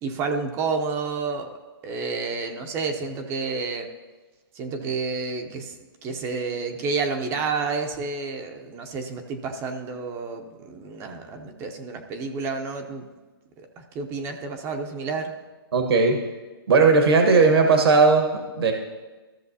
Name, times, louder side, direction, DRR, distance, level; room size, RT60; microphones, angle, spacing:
voice 1, 0.0-1.5 1.8-3.9 4.6-5.8 6.0-13.1 13.8-15.3, right 4 dB, 20° right, 5 dB, 0.6 m, -30 dB
voice 2, 15.7-16.2 16.7-18.7, right 4 dB, 70° right, 4 dB, 1.3 m, -17 dB
14.0 x 6.5 x 2.8 m, 1.2 s
hypercardioid pair, 145°, 13 cm